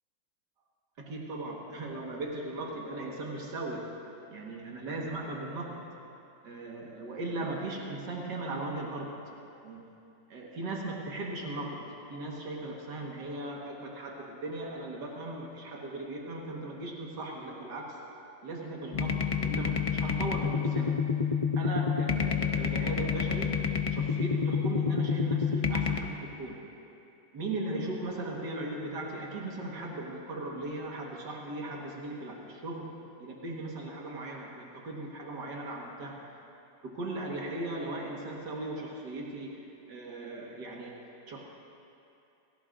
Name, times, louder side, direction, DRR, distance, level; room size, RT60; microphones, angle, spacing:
voice 1, 1.0-6.0 6.4-9.3 9.6-9.8 10.3-21.1 21.6-26.7 27.3-36.4 36.8-41.4, right 2 dB, 90° right, -2 dB, 2.2 m, -38 dB
sound 1, 18.9-26.0, left 6 dB, 60° left, 0.3 m, -29 dB
28.0 x 18.0 x 2.6 m, 2.7 s
omnidirectional pair, 1.8 m